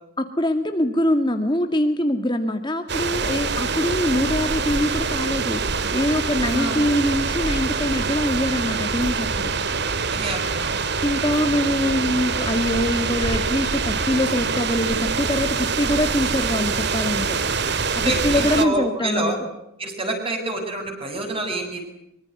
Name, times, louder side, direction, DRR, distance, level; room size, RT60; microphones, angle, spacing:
voice 1, 0.2-9.5 11.0-17.4 17.9-19.4, left 1 dB, 20° left, 6 dB, 1.9 m, -23 dB
sound 1, 2.9-18.7, right 4 dB, 50° right, 2.1 m, -25 dB
voice 2, 6.4-6.8 10.1-11.0 18.0-19.4 19.8-21.9, right 2 dB, 25° right, 4 dB, 7.9 m, -27 dB
25.5 x 24.5 x 9.6 m, 0.82 s
head